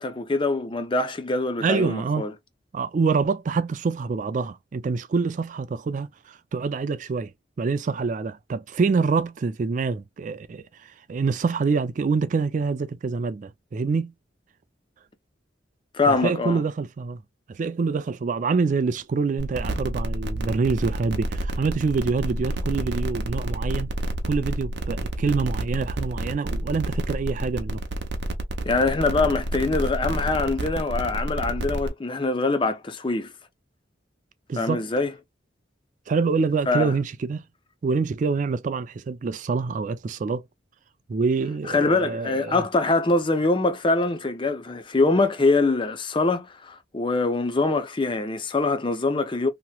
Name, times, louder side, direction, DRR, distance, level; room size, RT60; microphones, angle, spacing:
voice 1, 0.0-2.3 15.9-16.6 28.7-33.3 34.6-35.1 36.7-36.9 41.7-49.5, left 3 dB, 25° left, 0.5 m, -24 dB
voice 2, 1.6-2.3 2.7-7.3 7.6-14.1 16.1-17.2 17.5-23.9 24.3-27.8 34.5-34.8 36.1-37.4 37.8-40.4 41.1-42.6, right 4 dB, 45° right, 0.3 m, -26 dB
sound 1, 19.4-31.9, right 1 dB, 70° right, 0.7 m, -29 dB
2.9 x 2.9 x 2.2 m
head